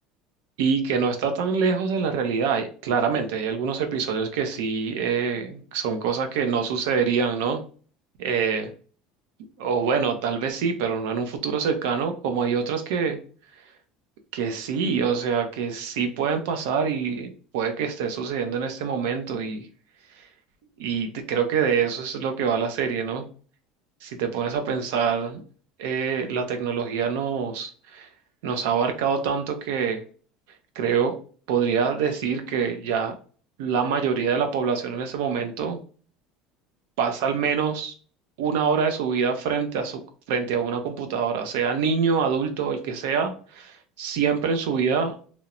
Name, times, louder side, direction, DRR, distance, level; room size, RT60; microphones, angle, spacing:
voice 1, 0.6-7.6 8.2-8.7 9.6-13.2 14.3-19.7 20.8-23.3 24.0-25.4 25.8-28.1 28.4-30.0 30.8-31.2 31.5-33.1 33.6-35.8 37.0-37.9 38.4-40.0 40.3-45.1, right 6 dB, 75° right, 6 dB, 0.5 m, -25 dB
2.9 x 2.0 x 2.4 m, 0.42 s
cardioid pair, 170°, 0 cm